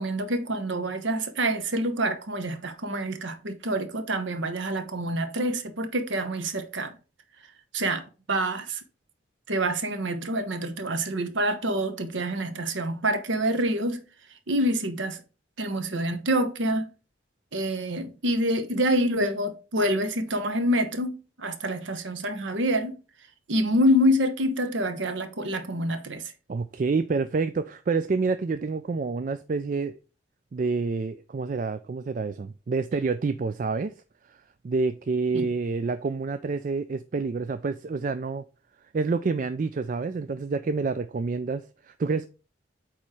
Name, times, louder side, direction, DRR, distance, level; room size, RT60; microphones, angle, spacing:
voice 1, 0.0-7.0 7.7-8.8 9.5-14.0 14.5-15.2 15.6-16.9 17.5-23.0 23.5-26.3 35.3-35.5, equal, 75° right, 1.0 m, -27 dB
voice 2, 26.5-29.9 30.5-33.9 34.6-38.4 38.9-42.3, right 4 dB, 45° right, 0.3 m, -28 dB
8.5 x 3.1 x 4.7 m
head